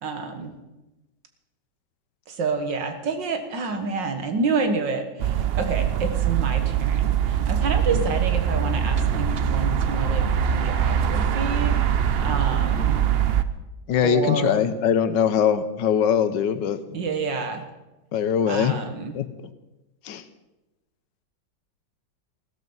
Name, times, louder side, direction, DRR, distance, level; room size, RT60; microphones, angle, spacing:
voice 1, 0.0-0.5 2.3-11.8 12.2-13.0 14.0-14.6 16.9-17.6 18.5-19.2, right 4 dB, 75° right, 7 dB, 2.2 m, -28 dB
sound 1, 5.2-13.4, right 8 dB, 90° right, 0.5 m, -23 dB
voice 2, 13.9-16.8 18.1-18.7 19.1-19.2 20.0-20.2, left 8 dB, 75° left, 12 dB, 1.5 m, -22 dB
15.5 x 13.5 x 5.5 m, 1.0 s
omnidirectional pair, 2.0 m